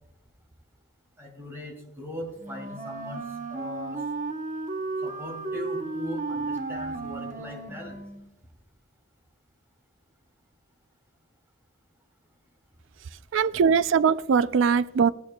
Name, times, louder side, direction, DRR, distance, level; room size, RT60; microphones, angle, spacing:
voice 1, 1.2-4.0 5.0-8.0, left 1 dB, 10° right, 2.7 m, -40 dB
Wind instrument woodwind instrument, 2.4-8.3, right 3 dB, 35° right, 0.8 m, -34 dB
voice 2, 13.3-15.1, right 6 dB, 65° right, 0.3 m, -21 dB
16.5 x 8.6 x 2.3 m
head